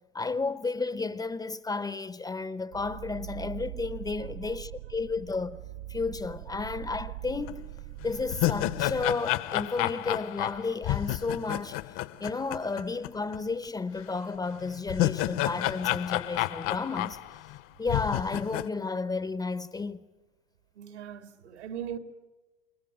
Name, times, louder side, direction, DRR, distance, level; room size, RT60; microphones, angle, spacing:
voice 1, 0.1-5.6 5.9-7.7 8.0-11.8 12.2-17.2 17.8-20.0, left 4 dB, 10° left, 0.8 m, -32 dB
sound 1, 2.7-9.1, right 16 dB, 50° right, 0.9 m, -42 dB
sound 2, 7.5-7.6 8.0-13.1 13.3-13.4 14.6-17.6 17.9-18.7, left 16 dB, 40° left, 0.9 m, -30 dB
voice 2, 20.8-22.0, right 9 dB, 75° right, 2.4 m, -39 dB
28.5 x 21.5 x 9.3 m
hypercardioid pair, 105°, 34 cm